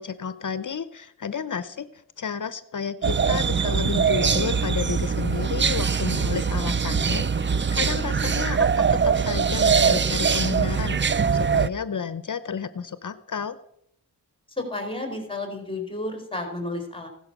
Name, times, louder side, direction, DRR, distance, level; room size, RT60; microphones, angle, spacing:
voice 1, 0.0-13.6, left 6 dB, 50° left, 14 dB, 0.7 m, -32 dB
sound 1, 3.0-11.7, right 6 dB, 30° right, 0.5 m, -22 dB
voice 2, 14.5-17.1, left 2 dB, 15° left, 3 dB, 4.2 m, -32 dB
16.0 x 12.0 x 6.0 m, 0.74 s
wide cardioid pair, 85°, 39 cm